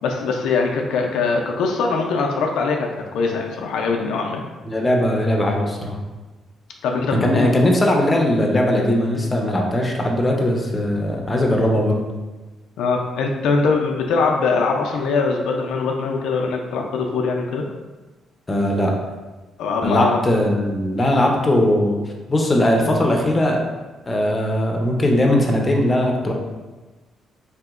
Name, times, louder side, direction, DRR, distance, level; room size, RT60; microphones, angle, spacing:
voice 1, 0.0-4.4 6.8-7.5 12.8-17.7 19.6-20.3 21.0-21.1, left 4 dB, 85° left, 1 dB, 0.3 m, -22 dB
voice 2, 4.6-6.0 7.1-12.0 18.5-18.9 19.8-22.0 22.3-23.6 24.1-26.3, left 1 dB, 25° left, 1 dB, 0.6 m, -19 dB
3.3 x 2.8 x 2.4 m, 1.2 s
cardioid pair, 90°, 0 cm